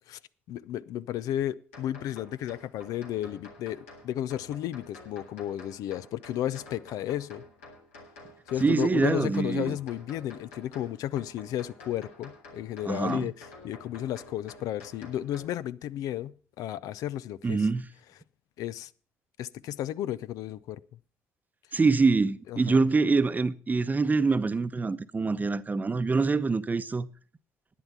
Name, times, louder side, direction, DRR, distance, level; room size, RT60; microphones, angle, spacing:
voice 1, 0.5-7.4 8.5-17.7 18.6-18.9 19.4-20.8 22.5-22.8, left 12 dB, 65° left, 0.5 m, -33 dB
sound 1, 1.7-15.5, left 2 dB, 90° left, 2.3 m, -50 dB
voice 2, 8.6-9.8 12.9-13.3 17.4-17.8 21.7-27.1, right 4 dB, 25° right, 0.8 m, -25 dB
11.5 x 9.3 x 5.8 m
hypercardioid pair, 55°, 6 cm